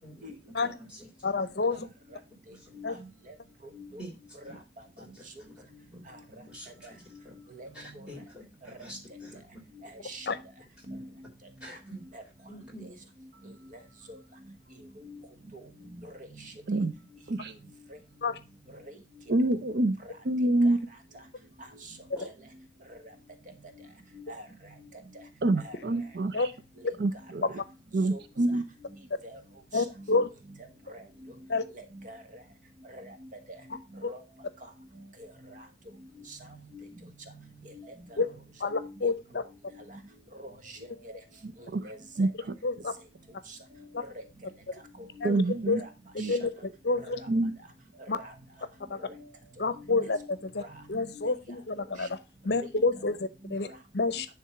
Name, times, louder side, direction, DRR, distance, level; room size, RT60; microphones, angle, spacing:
voice 1, 0.0-1.9 2.5-2.8 4.0-4.2 4.4-4.6 5.0-5.2 5.6-5.7 5.9-6.0 6.3-6.9 7.2-7.3 7.7-9.4 10.8-10.9 11.6-12.0 12.5-12.9 22.1-22.3, equal, 5° right, -2 dB, 3.2 m, -48 dB
voice 2, 1.2-1.9 2.8-2.9 10.3-10.4 18.2-18.3 26.3-26.5 29.7-30.3 31.5-31.6 38.2-38.3 38.6-39.4 42.6-42.9 45.2-45.8 46.3-46.5 46.8-47.2 48.1-48.2 49.6-50.6 50.9-52.1 52.5-53.7 53.9-54.3, left 3 dB, 65° left, 13 dB, 0.7 m, -28 dB
voice 3, 2.7-3.3 3.7-4.0 4.4-4.6 6.1-6.2 6.8-6.9 7.5-8.2 9.1-9.3 9.7-10.3 10.9-11.3 11.6-12.2 12.8-12.9 13.7-13.8 14.1-14.2 15.0-15.2 15.5-16.9 17.4-17.5 18.3-18.4 18.8-18.9 20.6-20.8 21.8-22.3 22.9-23.0 23.8-23.9 24.1-24.7 25.1-25.8 26.8-26.9 28.1-28.2 29.2-29.4 29.7-30.2 30.6-31.3 31.7-32.4 32.9-33.3 33.7-34.2 34.6-34.7 35.2-35.6 36.2-36.9 37.3-38.4 38.7-39.1 39.7-40.0 40.3-41.1 41.8-42.3 43.5-43.6 44.0-44.2 45.0-45.9 46.2-46.4 47.0-47.5 48.0-48.3 49.0-49.3 49.6-50.3 50.6-51.3 51.8-52.1 52.8-53.0 53.4-53.8, equal, 45° right, 6 dB, 1.2 m, -46 dB
voice 4, 19.3-20.0 20.3-20.8 25.4-26.3 27.0-27.4 27.9-28.6 41.7-41.8 42.2-42.3 45.2-45.8 46.2-46.3 47.3-47.5, right 2 dB, 60° right, 11 dB, 0.5 m, -26 dB
10.0 x 3.5 x 5.8 m, 0.28 s
head